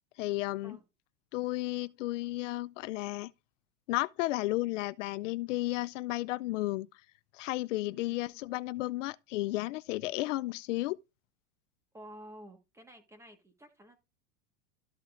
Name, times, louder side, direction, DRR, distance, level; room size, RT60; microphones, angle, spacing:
voice 1, 0.2-0.8 1.3-3.3 3.9-6.9 7.3-11.0, left 18 dB, 80° left, 0.5 m, -33 dB
voice 2, 7.9-8.2 11.9-14.0, equal, 10° right, 1.5 m, -51 dB
13.0 x 5.6 x 2.5 m
supercardioid pair, 140°, 36 cm